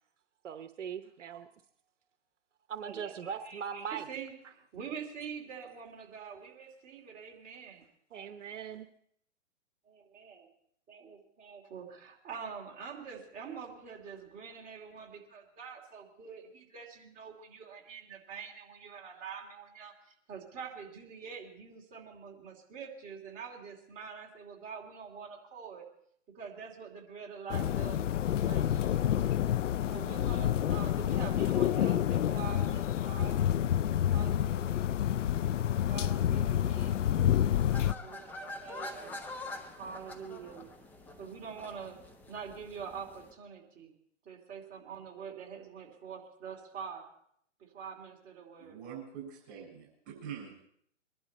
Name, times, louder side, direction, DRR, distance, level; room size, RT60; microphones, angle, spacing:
voice 1, 0.4-1.5 2.7-4.1 8.1-8.9, right 7 dB, 75° right, 9 dB, 1.0 m, -40 dB
voice 2, 2.8-7.9 9.8-10.5 10.9-25.8 26.3-29.4 29.9-33.5 34.1-34.8 35.7-37.0 38.0-39.2 39.6-40.7 41.2-43.9 44.2-47.1 47.6-48.8, right 6 dB, 20° right, -1 dB, 2.8 m, -45 dB
sound 1, 27.5-37.9, left 10 dB, 80° left, 0.5 m, -28 dB
sound 2, 37.5-43.3, left 2 dB, 5° left, 0.6 m, -45 dB
voice 3, 48.6-50.7, right 8 dB, 40° right, 0 dB, 6.4 m, -45 dB
23.0 x 11.5 x 4.3 m, 0.68 s
hypercardioid pair, 140°, 37 cm